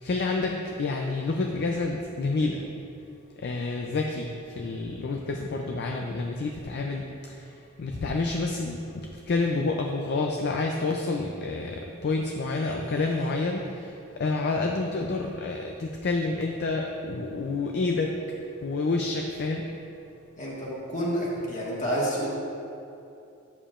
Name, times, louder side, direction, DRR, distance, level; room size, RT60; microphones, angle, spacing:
voice 1, 0.0-2.6 3.4-8.8 9.3-13.9 14.2-18.2 18.6-19.6, left 3 dB, 50° left, 2 dB, 0.4 m, -28 dB
voice 2, 20.4-22.3, equal, 35° left, -5 dB, 1.5 m, -29 dB
8.8 x 7.2 x 2.5 m, 2.7 s
head